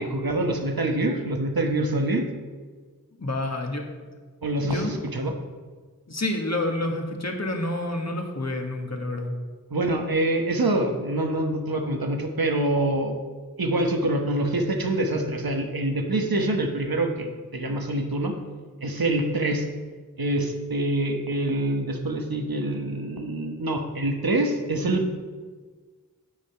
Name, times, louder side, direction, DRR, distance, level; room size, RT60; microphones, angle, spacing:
voice 1, 0.0-2.3 4.4-5.3 9.7-13.2 13.6-18.3 18.8-19.6 20.2-25.2, right 1 dB, 75° right, 3 dB, 1.2 m, -25 dB
voice 2, 3.2-3.8 4.6-4.9 6.1-9.3, left 1 dB, 45° left, 2 dB, 1.4 m, -28 dB
8.3 x 6.2 x 5.6 m, 1.5 s
wide cardioid pair, 45°, 36 cm